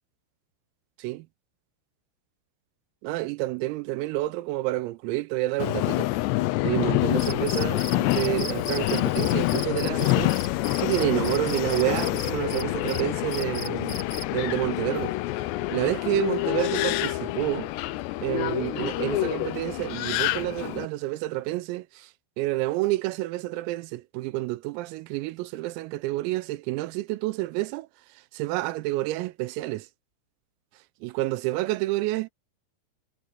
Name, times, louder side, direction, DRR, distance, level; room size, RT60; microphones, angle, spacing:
voice 1, 3.0-6.1 6.6-10.3 10.8-14.0 14.3-15.2 15.7-17.7 18.2-22.1 22.4-27.9 28.3-29.9 31.0-32.3, right 18 dB, 90° right, 3.5 m, -29 dB
Subway metro underground, 5.6-20.9, left 18 dB, 90° left, 2.4 m, -27 dB
Cricket, 7.2-14.4, left 1 dB, 25° left, 6.9 m, -38 dB
omnidirectional pair, 6.0 m